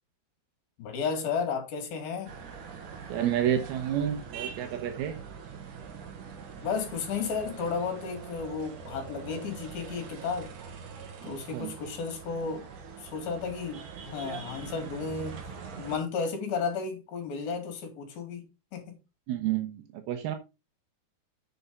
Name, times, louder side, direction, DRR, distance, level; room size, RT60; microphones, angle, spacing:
voice 1, 0.8-2.3 6.6-10.5 11.2-12.7 13.0-15.4 15.8-18.5 18.7-19.0, left 5 dB, 70° left, 4.0 m, -33 dB
sound 1, 2.3-16.0, right 6 dB, 60° right, 2.7 m, -43 dB
voice 2, 3.1-5.2 11.5-11.7 19.3-20.4, right 10 dB, 80° right, 2.9 m, -30 dB
7.8 x 7.0 x 4.0 m
omnidirectional pair, 4.4 m